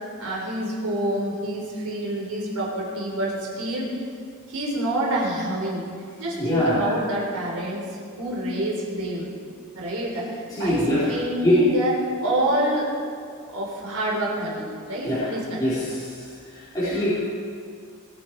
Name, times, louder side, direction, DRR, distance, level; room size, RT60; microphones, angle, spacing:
voice 1, 0.2-4.0 4.5-5.9 6.2-7.9 8.2-9.3 9.7-10.8 11.1-11.9 12.2-12.9 13.5-15.8, right 1 dB, 90° right, -3 dB, 4.1 m, -27 dB
voice 2, 6.4-6.9 10.5-11.0 11.4-11.6 15.0-15.2 15.6-16.0 16.7-17.1, left 1 dB, 20° left, -13 dB, 4.1 m, -22 dB
22.0 x 8.3 x 4.8 m, 2.2 s
head